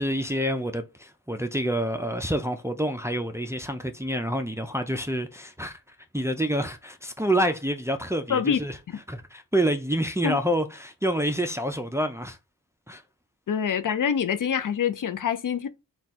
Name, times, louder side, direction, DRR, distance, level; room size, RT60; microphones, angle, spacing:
voice 1, 0.0-5.8 6.1-8.8 9.1-12.4 12.9-13.0, equal, 10° right, 0.3 m, -27 dB
voice 2, 8.3-8.6 8.9-9.0 10.2-10.4 13.5-15.7, left 7 dB, 65° left, 0.5 m, -25 dB
4.1 x 2.3 x 3.5 m
wide cardioid pair, 90°, 34 cm